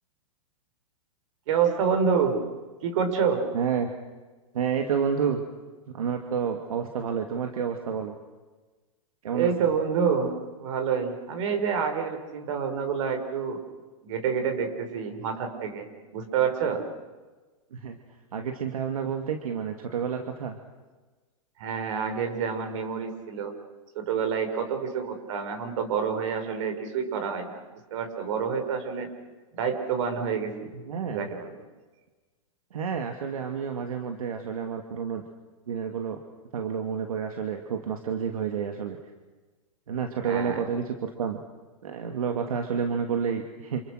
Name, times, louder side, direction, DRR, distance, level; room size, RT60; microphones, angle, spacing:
voice 1, 1.5-2.4 2.8-3.5 9.3-13.6 14.0-15.9 16.1-16.8 21.6-23.5 24.0-27.6 27.9-29.1 29.6-30.7 31.0-31.6 40.2-40.6, right 6 dB, 60° right, 7 dB, 5.8 m, -28 dB
voice 2, 3.5-3.9 4.5-5.4 5.9-8.1 9.2-9.7 17.7-18.0 18.3-20.6 30.9-31.3 32.7-35.2 35.7-36.2 36.5-39.0 39.9-41.4 41.8-43.8, right 7 dB, 85° right, 4 dB, 2.6 m, -29 dB
29.0 x 28.5 x 6.6 m, 1.3 s
hypercardioid pair, 140°, 18 cm